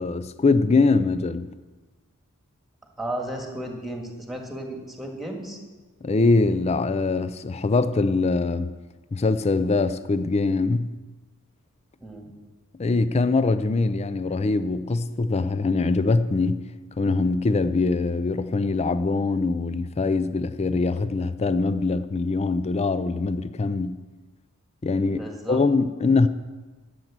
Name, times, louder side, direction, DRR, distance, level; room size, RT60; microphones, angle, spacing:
voice 1, 0.0-1.5 6.0-8.7 9.1-10.9 12.8-16.7 17.0-24.0 24.8-26.3, left 3 dB, 30° left, 0.4 m, -23 dB
voice 2, 3.0-5.6 12.0-12.3 25.1-25.6, right 1 dB, ahead, 1.9 m, -34 dB
12.5 x 7.9 x 7.4 m
head